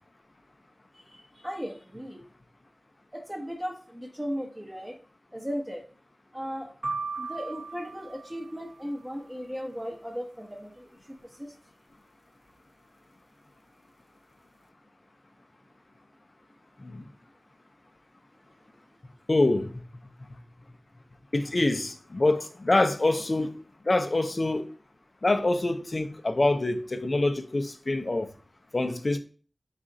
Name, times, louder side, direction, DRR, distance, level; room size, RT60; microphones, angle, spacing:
voice 1, 0.9-2.2 3.1-5.0 5.3-5.8 6.3-6.7 7.2-10.8 11.4-11.5, equal, 10° right, 0.8 m, -36 dB
sound 1, 6.8-9.0, right 4 dB, 65° right, 0.8 m, -37 dB
voice 2, 19.3-19.7 21.3-23.6 23.8-24.7 25.2-28.3 28.7-29.2, left 2 dB, 50° left, 0.5 m, -25 dB
4.2 x 2.4 x 3.8 m
cardioid pair, 45°, 0 cm